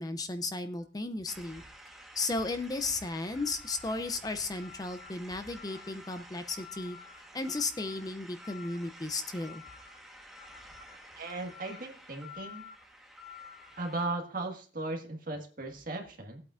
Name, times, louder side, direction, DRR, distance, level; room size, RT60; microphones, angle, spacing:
voice 1, 0.0-1.6 2.1-7.0 7.3-9.6, left 3 dB, 20° left, 9 dB, 0.5 m, -35 dB
sound 1, 1.3-14.0, left 2 dB, ahead, 1.2 m, -50 dB
voice 2, 11.1-12.7 13.8-16.4, right 2 dB, 45° right, 3 dB, 1.7 m, -37 dB
18.5 x 8.4 x 2.5 m, 0.40 s
head